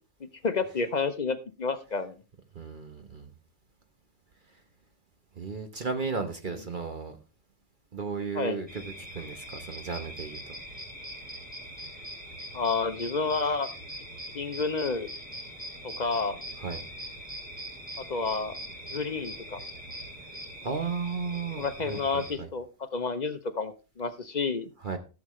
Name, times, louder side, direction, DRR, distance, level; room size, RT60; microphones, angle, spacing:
voice 1, 0.4-2.2 6.4-6.7 8.3-8.6 12.5-13.7 14.3-15.1 15.8-16.4 18.0-18.6 18.9-19.6 21.6-24.7, left 4 dB, 45° left, 0.7 m, -30 dB
voice 2, 2.5-3.3 5.4-7.2 7.9-8.8 9.1-10.4 16.6-16.8 20.6-22.5 24.8-25.0, right 5 dB, 45° right, 1.1 m, -34 dB
sound 1, 8.7-22.3, equal, 5° right, 3.0 m, -42 dB
15.0 x 7.3 x 3.1 m
omnidirectional pair, 1.3 m